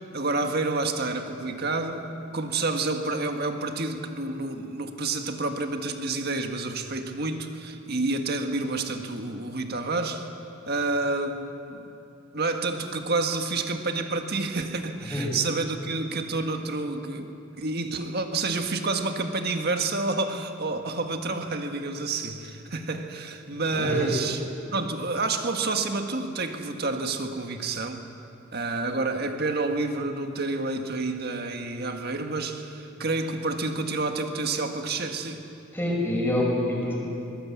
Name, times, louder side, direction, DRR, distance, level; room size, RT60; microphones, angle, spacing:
voice 1, 0.1-2.1 2.3-10.3 10.7-11.9 12.3-24.4 24.7-28.1 28.5-35.4, right 3 dB, 50° right, 5 dB, 1.6 m, -29 dB
voice 2, 23.7-24.1 35.7-36.9, left 1 dB, 10° left, -4 dB, 5.9 m, -26 dB
21.5 x 20.0 x 8.5 m, 2.8 s
head